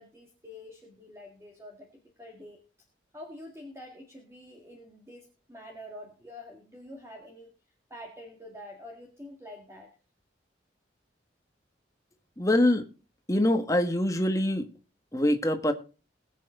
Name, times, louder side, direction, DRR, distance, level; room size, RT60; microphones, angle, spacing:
voice 1, 0.0-1.9 2.2-2.6 3.1-7.5 7.9-9.9, left 1 dB, 15° right, 1.9 m, -46 dB
voice 2, 12.4-12.8 13.3-14.7 15.1-15.7, left 1 dB, 15° left, 1.4 m, -24 dB
20.5 x 7.6 x 3.7 m
head